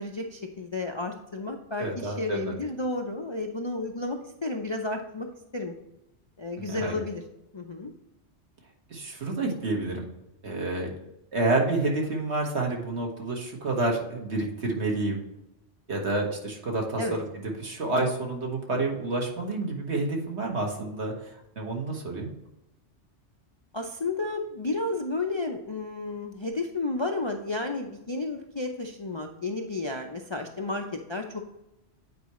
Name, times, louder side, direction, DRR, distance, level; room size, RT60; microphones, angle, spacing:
voice 1, 0.0-5.3 5.5-5.7 6.4-7.2 7.5-7.9 17.0-17.2 23.7-30.8 31.1-31.5, left 2 dB, 40° left, 2 dB, 0.4 m, -32 dB
voice 2, 1.8-2.5 6.7-6.9 8.9-10.1 10.4-10.9 11.3-15.2 15.9-21.1 21.6-22.3, right 2 dB, 65° right, 1 dB, 1.7 m, -29 dB
8.7 x 4.7 x 3.0 m, 0.89 s
omnidirectional pair, 1.2 m